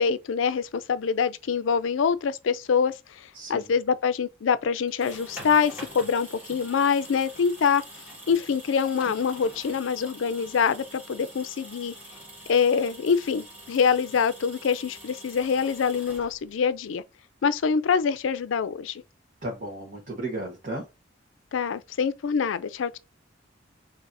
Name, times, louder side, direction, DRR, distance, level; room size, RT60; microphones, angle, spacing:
voice 1, 0.0-7.8 8.3-11.9 12.5-17.0 17.4-19.0 21.5-23.0, left 6 dB, 85° left, 0.4 m, -25 dB
voice 2, 3.3-3.7 19.4-20.8, right 1 dB, 45° right, 1.1 m, -34 dB
sound 1, 4.8-16.7, equal, 10° right, 1.7 m, -45 dB
6.7 x 2.8 x 2.6 m
head